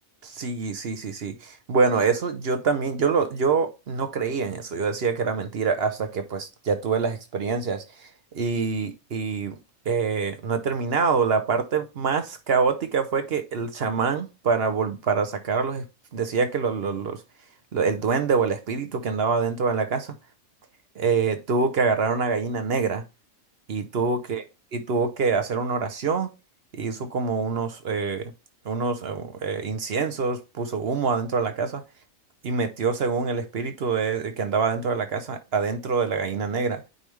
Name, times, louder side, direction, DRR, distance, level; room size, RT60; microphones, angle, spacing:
voice 1, 0.2-7.8 8.3-9.6 9.9-15.8 16.1-17.2 17.7-20.1 21.0-23.0 23.7-24.4 24.7-26.3 26.7-28.3 28.7-31.8 32.4-36.8, right 5 dB, 55° right, 0.9 m, -25 dB
9.2 x 3.5 x 3.2 m
omnidirectional pair, 1.4 m